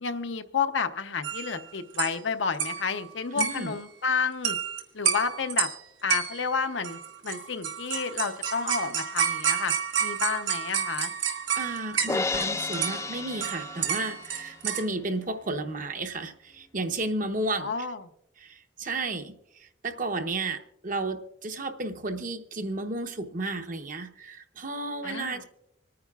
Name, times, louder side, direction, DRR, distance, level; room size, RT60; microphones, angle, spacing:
voice 1, 0.0-4.6 4.9-5.7 6.0-9.7 10.0-11.1 17.6-18.0 25.0-25.4, left 5 dB, 80° left, 8 dB, 0.8 m, -30 dB
sound 1, 1.2-1.6 1.9-2.2 2.5-3.0 3.4-3.8 4.4-4.8 5.1-5.8 6.1-6.5 6.8-12.5 12.7-14.9, right 7 dB, 90° right, 1.5 m, -30 dB
voice 2, 3.3-3.8 11.5-17.7 18.4-25.4, right 2 dB, 45° right, 7 dB, 0.8 m, -33 dB
Crash cymbal, 12.1-14.4, left 3 dB, 15° left, 0.3 m, -31 dB
26.0 x 9.6 x 2.4 m, 0.81 s
head